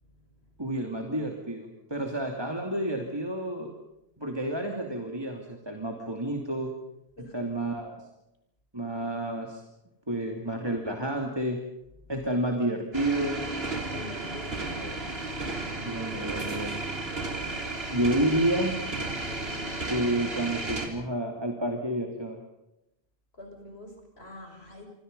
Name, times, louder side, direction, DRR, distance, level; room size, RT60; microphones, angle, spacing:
voice 1, 0.0-0.5 2.0-2.1 7.2-7.4 12.0-12.1 13.9-15.2 23.3-24.9, left 2 dB, 85° left, 4 dB, 6.3 m, -46 dB
voice 2, 0.6-3.7 4.2-6.7 7.3-8.0 8.7-9.6 10.1-11.6 12.1-13.4 15.8-16.8 17.9-18.7 19.9-22.4, right 1 dB, 25° right, 2 dB, 2.7 m, -30 dB
sound 1, 12.9-20.9, right 2 dB, 75° right, 3.6 m, -33 dB
28.5 x 24.0 x 5.4 m, 0.86 s
omnidirectional pair, 1.0 m